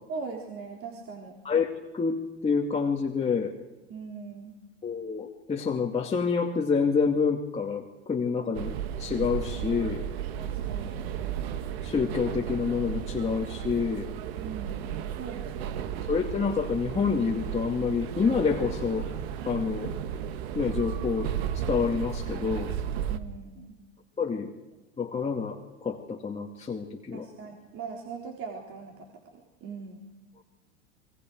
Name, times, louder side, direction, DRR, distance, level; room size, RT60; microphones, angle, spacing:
voice 1, 0.1-1.3 3.9-4.5 10.4-11.0 14.4-14.9 15.2-15.9 23.1-23.8 27.1-29.1 29.3-30.1, right 5 dB, 40° right, 0 dB, 3.8 m, -40 dB
voice 2, 1.9-3.5 4.8-8.7 9.0-10.1 11.8-14.1 16.1-19.1 19.5-19.9 20.5-22.7 24.2-24.5 25.0-27.3, left 5 dB, 20° left, 0 dB, 2.3 m, -28 dB
sound 1, 8.5-23.2, right 9 dB, 70° right, 1.7 m, -34 dB
28.5 x 23.5 x 4.7 m, 1.1 s
hypercardioid pair, 95°, 33 cm